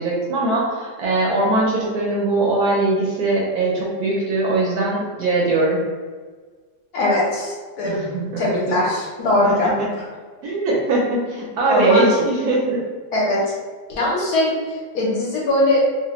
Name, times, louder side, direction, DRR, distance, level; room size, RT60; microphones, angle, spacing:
voice 1, 0.0-5.8 7.8-8.8 9.4-9.9 10.4-12.8, right 2 dB, 70° right, -3 dB, 1.0 m, -21 dB
voice 2, 6.9-8.0 8.4-10.1 11.7-12.1 13.1-13.5 13.9-16.1, left 1 dB, 65° left, -4 dB, 1.2 m, -21 dB
3.1 x 2.1 x 3.0 m, 1.5 s
omnidirectional pair, 1.9 m